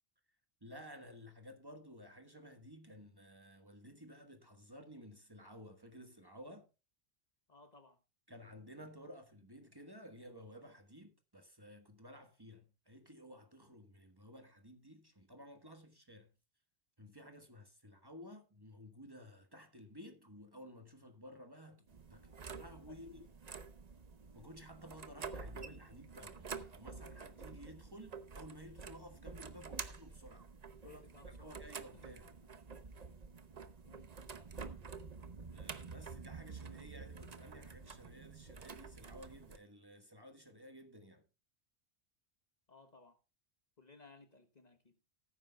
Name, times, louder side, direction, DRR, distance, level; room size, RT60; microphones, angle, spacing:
voice 1, 0.6-6.7 8.3-16.3 17.0-23.3 24.3-30.5 30.8-32.3 35.5-41.2, equal, 20° right, 1.3 m, -54 dB
voice 2, 7.5-8.0 22.9-23.0 30.8-31.5 31.9-32.4 33.8-34.1 42.7-43.2 43.8-45.0, left 4 dB, 40° left, 1.1 m, -60 dB
sound 1, 21.9-39.6, right 5 dB, 40° right, 0.9 m, -49 dB
18.0 x 9.6 x 2.3 m
omnidirectional pair, 1.1 m